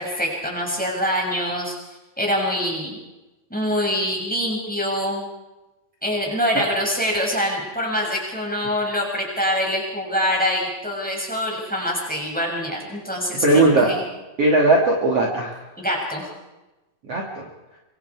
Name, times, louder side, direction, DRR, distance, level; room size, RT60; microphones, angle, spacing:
voice 1, 0.0-1.7 2.2-3.0 3.5-5.3 6.0-14.0 15.8-16.2, equal, ahead, -1 dB, 6.4 m, -24 dB
voice 2, 13.4-13.9 14.4-15.5 17.1-17.4, right 2 dB, 45° right, -1 dB, 3.3 m, -18 dB
25.5 x 25.0 x 4.8 m, 1.0 s
omnidirectional pair, 4.2 m